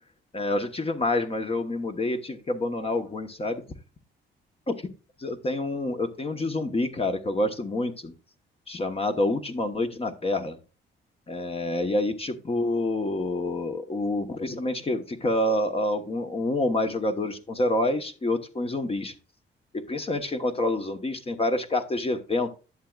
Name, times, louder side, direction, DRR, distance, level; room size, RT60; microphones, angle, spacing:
voice 1, 0.3-3.6 4.7-4.8 5.2-8.1 8.7-10.6 11.3-19.1 19.9-22.5, left 2 dB, 30° left, 6 dB, 1.1 m, -27 dB
11.0 x 7.3 x 2.4 m, 0.33 s
cardioid pair, 90°, 20 cm